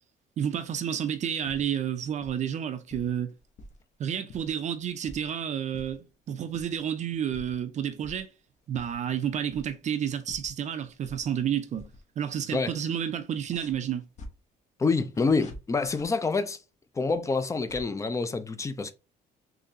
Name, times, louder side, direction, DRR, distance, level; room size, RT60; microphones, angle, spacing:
voice 1, 0.4-3.3 4.0-8.3 8.7-11.9 12.2-14.0, right 9 dB, 45° right, 0.5 m, -30 dB
sound 1, 1.3-1.9 2.2-2.5 2.9-3.8 4.1-5.3 5.7-6.1 6.5-6.8 7.1-7.6 8.0-8.2 8.6-10.0 10.3-11.4 11.7-12.0 12.3-12.4 13.3-14.3 15.1-16.1 17.0-17.8, left 1 dB, 45° left, 0.7 m, -47 dB
voice 2, 14.8-16.6 17.0-18.9, left 4 dB, 20° left, 0.4 m, -27 dB
3.8 x 2.8 x 2.7 m
cardioid pair, 110°, 17 cm